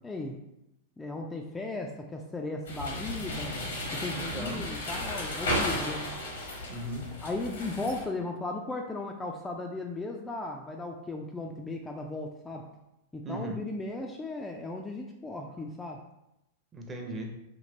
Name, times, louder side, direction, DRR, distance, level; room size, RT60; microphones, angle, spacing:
voice 1, 0.0-0.4 1.0-3.6 3.9-6.1 7.2-12.7 13.1-16.0, left 2 dB, 15° left, 1 dB, 0.3 m, -36 dB
sound 1, 2.6-8.0, left 1 dB, 80° left, 0.9 m, -34 dB
voice 2, 4.1-4.6 6.7-7.2 13.2-13.6 16.7-17.4, right 1 dB, 20° right, 1 dB, 0.7 m, -37 dB
3.1 x 2.8 x 2.6 m, 0.86 s
hypercardioid pair, 100°, 0 cm